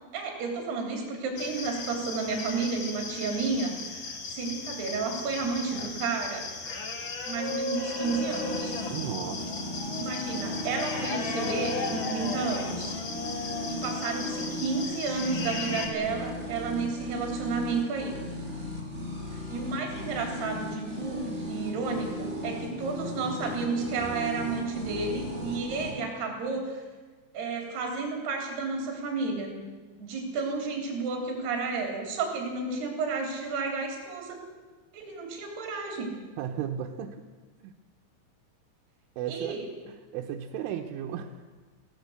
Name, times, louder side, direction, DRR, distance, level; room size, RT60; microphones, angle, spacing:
voice 1, 0.1-6.5 7.3-8.8 10.0-12.9 13.7-18.2 19.3-26.8 27.3-29.5 30.0-34.4 34.9-36.1 39.3-39.7, right 4 dB, 60° right, 2 dB, 5.1 m, -32 dB
sound 1, 1.4-15.9, left 3 dB, 60° left, 1.3 m, -36 dB
sound 2, 8.0-25.9, left 1 dB, 15° right, 3.8 m, -37 dB
voice 2, 8.9-9.5 36.4-37.2 37.6-37.7 39.2-39.6 39.9-41.5, right 9 dB, 85° right, 2 dB, 3.5 m, -35 dB
21.0 x 17.0 x 8.0 m, 1.4 s
omnidirectional pair, 5.6 m